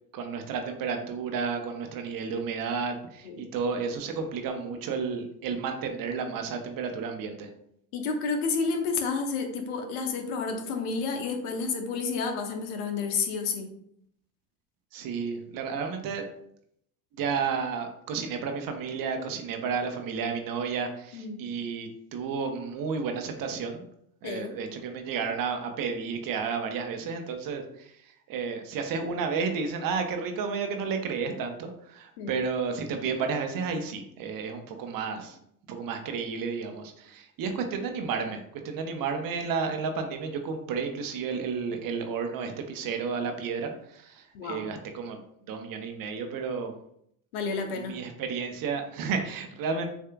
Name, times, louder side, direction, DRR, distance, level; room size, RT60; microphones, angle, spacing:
voice 1, 0.1-7.5 14.9-16.3 17.1-23.8 24.2-35.4 35.7-46.7 47.7-49.9, right 5 dB, 45° right, 5 dB, 0.9 m, -32 dB
voice 2, 7.9-13.7 21.1-21.4 24.2-24.5 32.2-32.3 44.3-44.6 47.3-48.0, left 4 dB, 70° left, 4 dB, 1.0 m, -30 dB
6.8 x 2.7 x 2.4 m, 0.71 s
hypercardioid pair, 75°, 47 cm